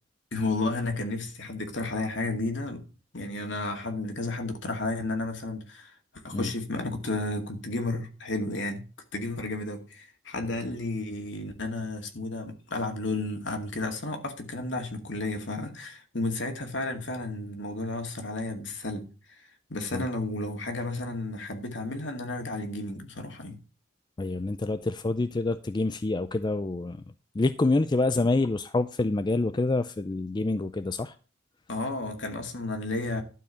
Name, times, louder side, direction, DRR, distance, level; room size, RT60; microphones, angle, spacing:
voice 1, 0.3-2.8 3.1-8.8 9.1-19.4 19.7-23.6 31.7-33.2, left 2 dB, 60° left, 2.2 m, -32 dB
voice 2, 24.2-27.0 27.3-31.1, left 2 dB, 20° left, 0.4 m, -27 dB
12.0 x 4.7 x 7.0 m
head